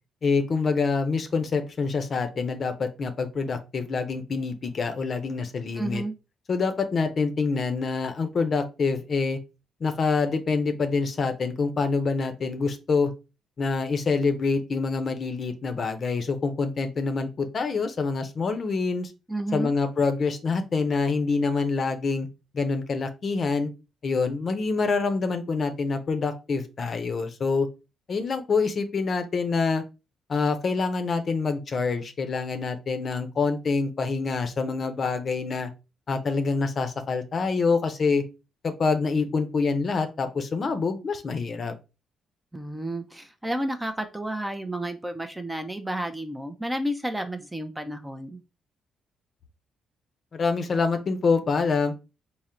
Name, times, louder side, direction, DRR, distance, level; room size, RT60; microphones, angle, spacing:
voice 1, 0.2-6.0 6.5-9.4 9.8-13.1 13.6-19.1 19.5-22.3 22.5-23.7 24.0-27.7 28.1-29.8 30.3-35.7 36.1-38.2 38.6-41.8 50.3-51.9, left 4 dB, 45° left, 8 dB, 0.6 m, -26 dB
voice 2, 5.8-6.1 19.3-19.7 42.5-48.4, right 1 dB, 10° right, 7 dB, 0.5 m, -31 dB
3.7 x 2.0 x 4.2 m, 0.29 s
cardioid pair, 90°, 0 cm